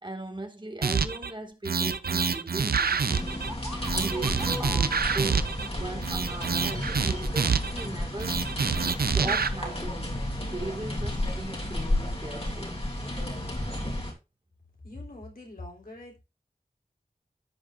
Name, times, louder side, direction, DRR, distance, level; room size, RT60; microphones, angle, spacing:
voice 1, 0.0-8.4 9.0-10.2 10.5-13.5, right 2 dB, 30° right, 2.1 m, -39 dB
sound 1, 0.8-1.3 1.6-3.5 3.8-5.7 6.0-7.9 8.2-9.5, right 5 dB, 90° right, 0.6 m, -27 dB
sound 2, 3.1-14.1, left 1 dB, 40° left, 3.4 m, -32 dB
sound 3, 3.5-7.2, equal, 10° right, 3.0 m, -44 dB
voice 2, 14.8-16.2, left 2 dB, 75° left, 3.5 m, -43 dB
15.0 x 5.2 x 2.5 m
wide cardioid pair, 45°, 15 cm